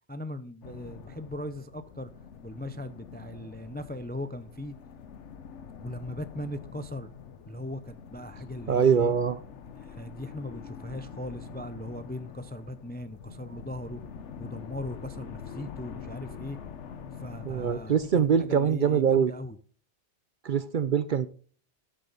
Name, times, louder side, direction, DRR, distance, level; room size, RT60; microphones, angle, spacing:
voice 1, 0.1-2.1 2.4-4.7 5.8-7.1 7.5-9.1 9.8-14.0 14.4-16.6 17.2-19.6, left 1 dB, 15° left, 0.4 m, -39 dB
sound 1, 0.6-19.1, left 7 dB, 80° left, 1.2 m, -45 dB
voice 2, 8.7-9.4 17.5-19.3 20.4-21.3, right 7 dB, 55° right, 0.6 m, -23 dB
13.5 x 7.6 x 4.0 m
omnidirectional pair, 1.2 m